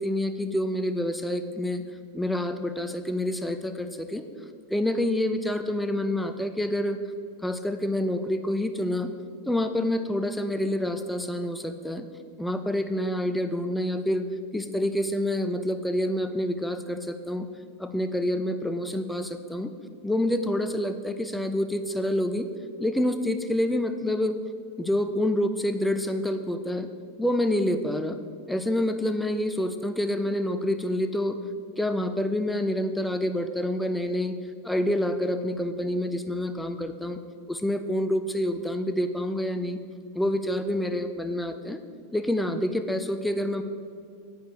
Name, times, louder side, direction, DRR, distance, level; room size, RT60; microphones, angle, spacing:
voice 1, 0.0-1.8 2.1-4.2 4.7-7.0 7.4-9.1 9.5-12.1 12.4-14.2 14.5-17.5 17.8-19.7 20.0-22.5 22.8-24.4 24.8-26.9 27.2-28.2 28.5-31.4 31.8-34.4 34.6-37.2 37.5-39.8 40.1-41.8 42.1-43.6, left 1 dB, 5° left, 8 dB, 0.7 m, -27 dB
9.3 x 8.7 x 4.9 m, 2.3 s
hypercardioid pair, 115°, 0 cm